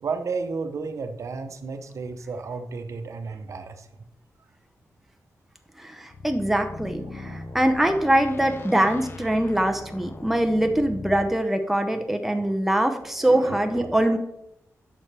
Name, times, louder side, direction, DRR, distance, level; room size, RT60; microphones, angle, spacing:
voice 1, 0.0-3.9 7.1-7.6 12.3-12.8 13.2-14.2, right 4 dB, 65° right, 7 dB, 0.8 m, -33 dB
voice 2, 5.8-14.2, right 1 dB, 5° right, 5 dB, 0.6 m, -23 dB
sound 1, 6.1-11.4, left 3 dB, 45° left, 0.6 m, -39 dB
11.0 x 6.1 x 3.3 m, 0.82 s
wide cardioid pair, 145°, 6 cm